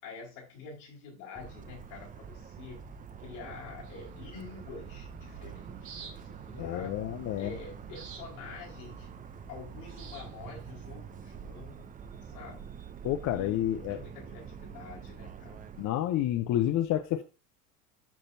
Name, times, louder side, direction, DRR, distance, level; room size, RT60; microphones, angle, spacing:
voice 1, 0.0-2.9 3.2-7.1 7.4-9.1 9.5-11.9 12.3-12.7 13.3-15.7, left 4 dB, 70° left, 4.4 m, -47 dB
Motor vehicle (road) / Siren, 1.4-15.9, right 7 dB, 20° right, 0.5 m, -46 dB
sound 1, 3.8-10.7, right 5 dB, 90° right, 2.8 m, -53 dB
voice 2, 6.6-7.5 13.0-14.0 15.8-17.2, left 12 dB, 40° left, 0.6 m, -29 dB
12.0 x 4.3 x 2.7 m
hypercardioid pair, 95°, 45 cm